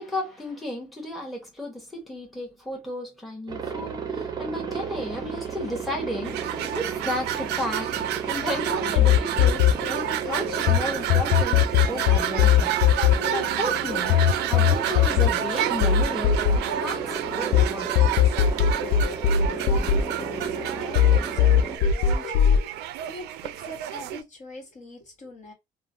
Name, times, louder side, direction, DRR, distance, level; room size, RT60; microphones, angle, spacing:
voice 1, 0.0-12.8 13.2-17.9, left 1 dB, ahead, 1.1 m, -33 dB
Aircraft, 3.5-21.8, right 6 dB, 25° right, 0.6 m, -34 dB
sound 1, 6.2-24.2, right 12 dB, 80° right, 0.4 m, -30 dB
sound 2, 9.0-10.8 11.1-17.6 18.0-20.6 21.0-22.6, left 9 dB, 65° left, 0.4 m, -20 dB
voice 2, 19.4-25.5, left 2 dB, 45° left, 1.3 m, -43 dB
3.0 x 2.1 x 2.6 m
cardioid pair, 110°, 17 cm